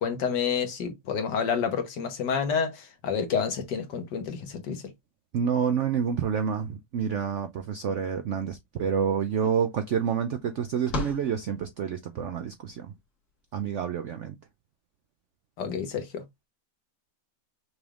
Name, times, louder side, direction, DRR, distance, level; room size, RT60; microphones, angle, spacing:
voice 1, 0.0-4.8 15.6-16.5, left 6 dB, 75° left, 1.7 m, -29 dB
voice 2, 5.3-12.9 13.5-14.4, right 7 dB, 75° right, 0.7 m, -28 dB
sound 1, 8.8-8.9 9.1-12.2, left 4 dB, 55° left, 2.1 m, -39 dB
6.0 x 3.4 x 2.4 m
omnidirectional pair, 1.9 m